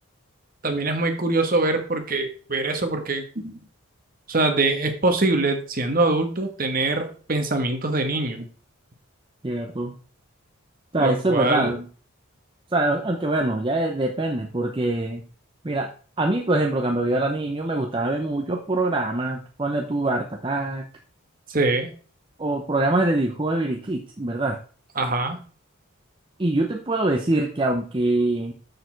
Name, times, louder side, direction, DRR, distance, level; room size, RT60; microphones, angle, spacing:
voice 1, 0.6-3.6 4.3-8.4 11.0-11.7 21.5-21.9 24.9-25.4, right 2 dB, 40° right, 5 dB, 1.4 m, -23 dB
voice 2, 9.4-9.9 10.9-11.9 12.7-15.2 15.6-15.9 16.2-20.9 22.4-24.6 26.4-28.5, right 2 dB, 25° right, 2 dB, 0.7 m, -24 dB
6.8 x 6.7 x 4.6 m, 0.40 s
head